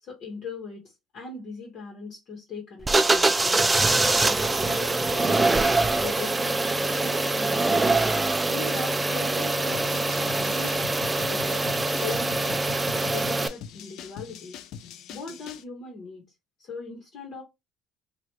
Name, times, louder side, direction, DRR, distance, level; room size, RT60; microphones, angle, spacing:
voice 1, 0.0-3.7 4.2-6.5 6.9-7.9 8.5-10.9 11.3-12.7 13.1-14.6 15.1-16.2 16.6-17.4, left 4 dB, 55° left, 1.2 m, -40 dB
sound 1, 2.8-13.5, right 2 dB, 15° right, 0.4 m, -24 dB
sound 2, 9.7-15.6, left 8 dB, 70° left, 0.4 m, -42 dB
3.1 x 2.5 x 3.0 m
cardioid pair, 110°, 0 cm